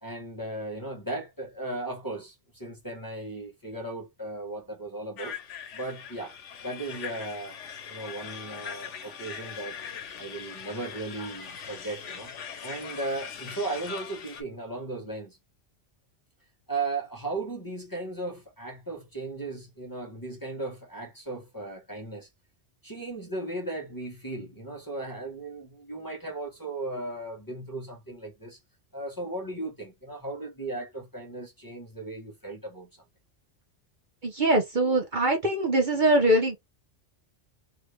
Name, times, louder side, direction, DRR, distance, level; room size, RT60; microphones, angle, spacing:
voice 1, 0.0-5.4 5.7-6.4 6.6-7.6 7.9-9.8 10.2-12.3 12.6-15.4 16.7-22.3 22.8-28.6 28.9-32.9, right 2 dB, 20° left, 1.0 m, -36 dB
sound 1, 5.2-14.4, left 7 dB, 85° left, 1.1 m, -41 dB
voice 2, 34.2-36.6, right 1 dB, 45° right, 1.0 m, -23 dB
2.9 x 2.5 x 3.1 m
omnidirectional pair, 1.2 m